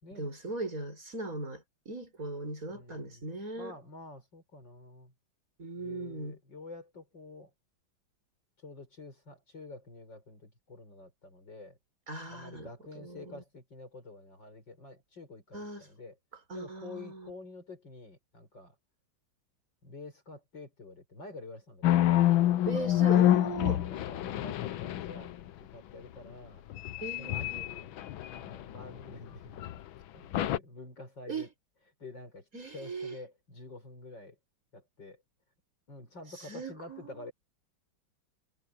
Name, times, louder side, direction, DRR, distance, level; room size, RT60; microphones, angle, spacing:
voice 1, 0.1-3.8 5.6-6.4 12.1-12.7 13.0-13.4 15.5-15.9 16.5-17.3 22.6-23.9 27.0-27.7 31.3-31.5 32.5-33.2 36.3-37.3, right 2 dB, 40° right, 7.1 m, -39 dB
voice 2, 2.7-3.3 3.6-5.1 5.8-7.5 8.6-11.8 12.2-16.2 16.5-18.8 19.8-22.2 23.8-25.3 25.6-26.6 27.2-27.9 28.3-29.6 30.1-31.5 32.0-32.5 32.7-34.4 34.7-35.2 35.9-37.3, left 2 dB, 60° left, 7.2 m, -48 dB
sound 1, 21.8-25.4 26.7-29.0 29.6-29.8 30.3-30.6, left 13 dB, 75° left, 1.6 m, -27 dB
omnidirectional pair, 2.2 m